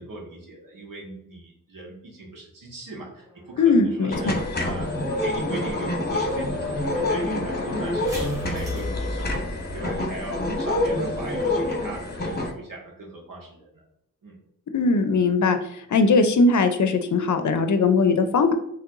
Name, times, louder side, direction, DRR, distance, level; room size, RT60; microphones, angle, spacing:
voice 1, 0.0-4.9 5.2-13.8 14.2-14.4, right 2 dB, 75° right, -2 dB, 1.5 m, -39 dB
sound 1, 3.2-10.0, left 1 dB, 10° right, 1.5 m, -37 dB
voice 2, 3.6-4.3 14.7-15.6 15.9-18.5, left 3 dB, 60° left, 8 dB, 0.6 m, -20 dB
sound 2, 4.1-12.5, left 1 dB, 30° left, 1.1 m, -27 dB
4.6 x 3.1 x 2.5 m, 0.75 s
cardioid pair, 60°, 34 cm